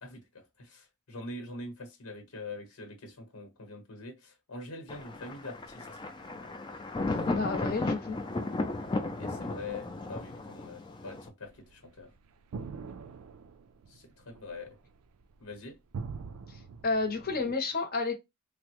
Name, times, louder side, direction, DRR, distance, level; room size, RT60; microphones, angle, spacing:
voice 1, 0.0-6.0 9.2-12.1 13.9-14.7 15.4-15.8, left 2 dB, 80° left, 1.0 m, -44 dB
Thunder, 4.9-11.3, left 2 dB, 20° left, 0.4 m, -35 dB
voice 2, 7.0-8.2 16.5-18.2, left 3 dB, 45° left, 0.8 m, -31 dB
sound 1, 11.4-17.5, right 5 dB, 80° right, 0.4 m, -43 dB
3.3 x 2.0 x 2.9 m
head